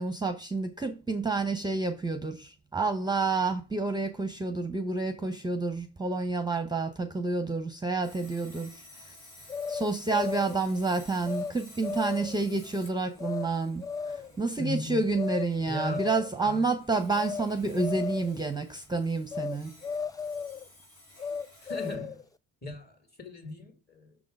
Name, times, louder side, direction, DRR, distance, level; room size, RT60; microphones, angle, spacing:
voice 1, 0.0-9.2 9.7-19.7, right 3 dB, 10° right, 0.8 m, -29 dB
Sawing, 8.0-21.9, left 1 dB, 85° left, 3.0 m, -54 dB
sound 1, 9.5-10.6 11.3-11.5 11.8-12.4 13.2-13.5 13.8-14.4 15.1-15.5 15.8-16.4 17.1-17.5 17.8-18.4 19.3-19.6 19.8-20.6 21.2-22.2, left 5 dB, 10° left, 0.4 m, -35 dB
voice 2, 14.6-15.0 15.7-16.0 16.4-16.7 21.6-22.3 22.6-24.2, left 2 dB, 25° left, 2.4 m, -37 dB
6.2 x 3.8 x 5.2 m
supercardioid pair, 65°, 38 cm